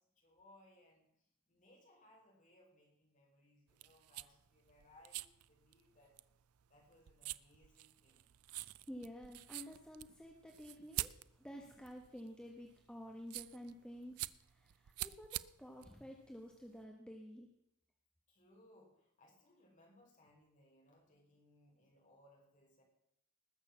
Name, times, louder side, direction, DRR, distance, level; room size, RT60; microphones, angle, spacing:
voice 1, 0.0-6.2 6.7-8.3 18.3-22.8, left 1 dB, 35° left, 0 dB, 5.0 m, -67 dB
sound 1, 3.7-16.8, right 16 dB, 90° right, 0.5 m, -48 dB
voice 2, 8.8-17.5, equal, 5° left, 1 dB, 1.3 m, -51 dB
19.5 x 6.9 x 7.2 m, 0.79 s
head